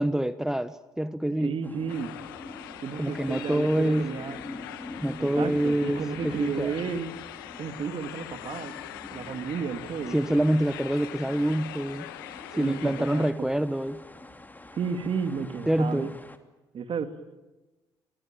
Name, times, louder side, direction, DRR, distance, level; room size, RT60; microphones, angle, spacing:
voice 1, 0.0-1.6 3.0-4.2 5.0-6.7 10.1-12.1 12.5-14.0 15.7-16.1, right 1 dB, 5° right, 1.0 m, -26 dB
voice 2, 1.4-2.1 2.8-4.4 5.2-7.1 7.6-8.7 9.1-10.5 12.5-13.5 14.8-16.1 16.7-17.1, right 6 dB, 50° right, 2.5 m, -32 dB
sound 1, 1.6-16.4, left 2 dB, 15° left, 2.8 m, -44 dB
sound 2, 1.9-13.3, left 14 dB, 85° left, 1.2 m, -42 dB
25.0 x 21.5 x 9.0 m
hypercardioid pair, 55°, 11 cm